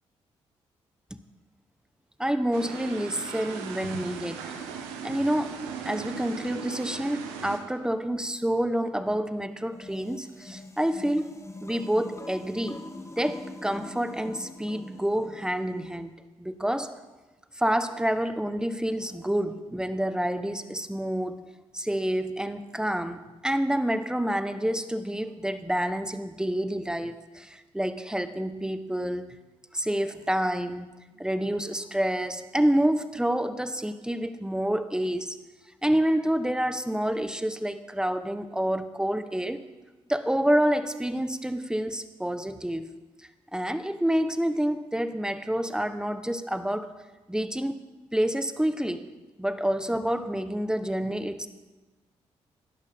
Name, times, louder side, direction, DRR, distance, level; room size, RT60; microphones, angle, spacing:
voice 1, 2.2-4.4 5.0-5.6 5.8-11.3 11.6-12.8 13.2-16.9 17.6-21.4 21.7-29.3 29.7-35.4 35.8-39.6 40.1-42.9 43.5-47.0 47.3-47.7 48.1-49.0 49.4-51.5, right 1 dB, 5° right, 11 dB, 1.0 m, -28 dB
sound 1, 2.5-7.6, right 6 dB, 85° right, 1.0 m, -38 dB
sound 2, 9.7-16.0, left 2 dB, 20° left, 1.3 m, -43 dB
18.5 x 11.0 x 3.6 m, 1.2 s
hypercardioid pair, 40°, 14 cm